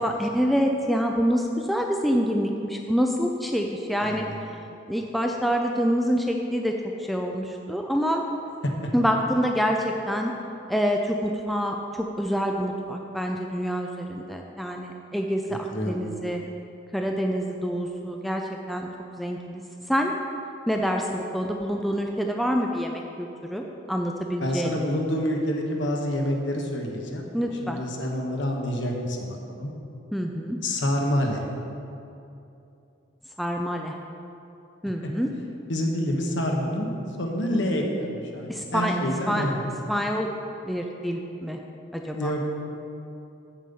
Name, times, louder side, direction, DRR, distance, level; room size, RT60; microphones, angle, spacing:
voice 1, 0.0-4.2 4.9-8.2 8.9-10.3 10.7-16.5 16.9-18.4 18.7-18.9 19.2-19.6 19.9-20.1 20.7-23.6 23.9-24.8 27.3-27.8 30.1-30.6 33.4-33.9 34.8-35.3 38.5-38.9 39.3-39.5 39.9-40.3 40.7-41.6 41.9-42.3, equal, ahead, 1 dB, 0.4 m, -26 dB
voice 2, 4.0-4.4 8.8-8.9 15.7-16.0 24.4-27.3 27.6-29.7 30.6-31.4 35.7-36.9 37.2-39.7 42.1-42.5, equal, 65° left, 1 dB, 1.2 m, -27 dB
8.1 x 7.4 x 5.5 m, 2.8 s
head